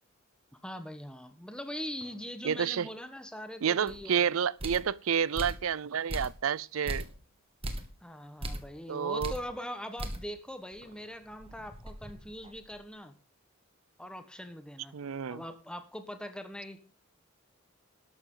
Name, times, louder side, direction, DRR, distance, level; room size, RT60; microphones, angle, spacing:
voice 1, 0.6-4.3 8.0-13.1 14.0-14.9 15.3-16.8, equal, 5° left, 1.3 m, -42 dB
sound 1, 2.0-3.9 5.3-6.2 6.9-7.3 7.7-7.8 8.5-8.6 10.0-11.5, right 1 dB, 60° right, 6.6 m, -62 dB
voice 2, 2.4-2.9 3.6-7.1 8.9-9.3 14.9-15.4, right 7 dB, 85° right, 0.5 m, -29 dB
sound 2, 3.9-4.0 4.6-4.9 5.4-5.7 6.1-6.5 6.9-7.2 7.6-7.9 8.4-8.7 9.2-9.5 10.0-10.3 10.7-10.8 11.3-12.8, right 1 dB, 30° right, 1.6 m, -38 dB
13.0 x 12.0 x 3.9 m
head